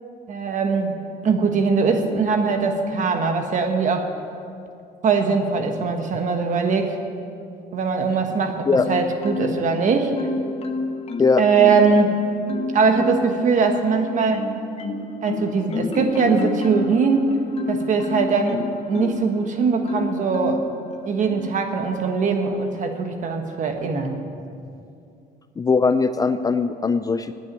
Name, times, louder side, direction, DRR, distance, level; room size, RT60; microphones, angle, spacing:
voice 1, 0.3-1.0 1.2-4.1 5.0-7.0 7.7-10.1 11.4-12.2 12.7-14.5 15.2-17.3 17.7-18.6 18.9-20.6 21.1-24.2, right 5 dB, 45° right, 5 dB, 1.4 m, -21 dB
Marimba xylophone, 8.8-9.8 10.2-12.0 12.5-13.4 13.9-19.3 19.9-20.7 21.3-21.5, left 3 dB, 35° left, 1.1 m, -29 dB
voice 2, 25.6-27.3, left 4 dB, 20° left, 10 dB, 0.4 m, -20 dB
9.1 x 9.0 x 9.4 m, 2.5 s
cardioid pair, 110°, 17 cm